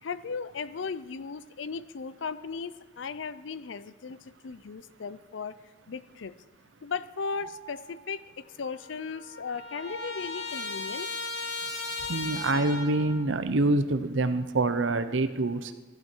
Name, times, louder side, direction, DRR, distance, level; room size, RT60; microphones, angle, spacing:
voice 1, 0.0-5.6 5.9-6.3 6.8-11.1, left 5 dB, 80° left, 15 dB, 0.5 m, -37 dB
sound 1, 7.2-8.1 9.8-10.8 12.3-13.4, right 5 dB, 20° right, 1.9 m, -46 dB
Trumpet, 8.4-8.5 8.8-13.2, left 3 dB, 60° left, 2.6 m, -36 dB
voice 2, 12.1-15.7, right 2 dB, 80° right, 11 dB, 0.7 m, -26 dB
15.0 x 12.0 x 4.5 m, 1.3 s
head